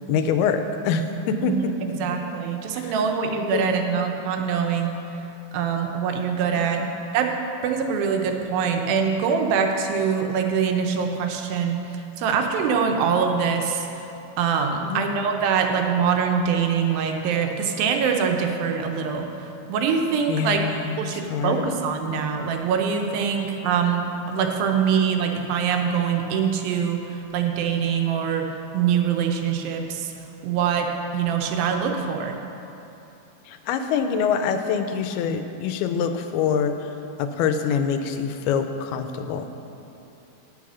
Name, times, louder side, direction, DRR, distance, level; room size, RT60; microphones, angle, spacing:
voice 1, 0.1-1.6 1.9-2.2 2.7-2.9 3.5-3.9 6.8-6.9 14.8-15.1 20.3-21.7 33.5-36.9 37.2-39.5, left 6 dB, 90° left, 8 dB, 2.6 m, -25 dB
voice 2, 1.4-5.0 5.5-6.8 7.1-7.3 7.6-14.1 14.4-19.3 19.7-20.6 21.0-28.5 28.7-30.1 30.4-32.4, right 6 dB, 80° right, 4 dB, 2.4 m, -24 dB
8.5 x 8.3 x 6.1 m, 3.0 s
omnidirectional pair, 4.4 m